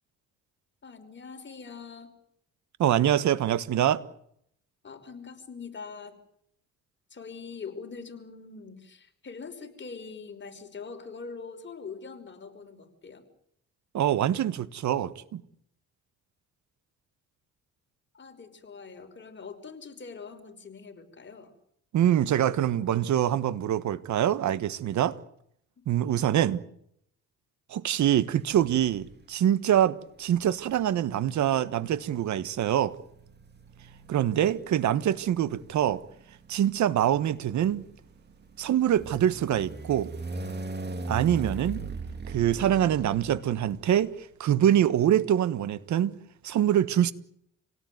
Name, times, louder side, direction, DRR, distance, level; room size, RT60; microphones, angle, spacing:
voice 1, 0.8-2.1 4.8-6.2 7.1-13.2 18.1-21.5 26.0-26.3, left 5 dB, 40° left, 5.3 m, -43 dB
voice 2, 2.8-4.0 13.9-15.4 21.9-25.2 25.9-26.6 27.7-33.0 34.1-36.0 36.5-37.8 38.6-40.1 41.1-41.8 42.3-44.1 44.4-46.2 46.4-47.1, right 11 dB, 70° right, 1.4 m, -24 dB
sound 1, 28.5-29.2 30.3-44.0, right 3 dB, 35° right, 2.5 m, -40 dB
27.5 x 18.0 x 9.5 m
cardioid pair, 90°, 30 cm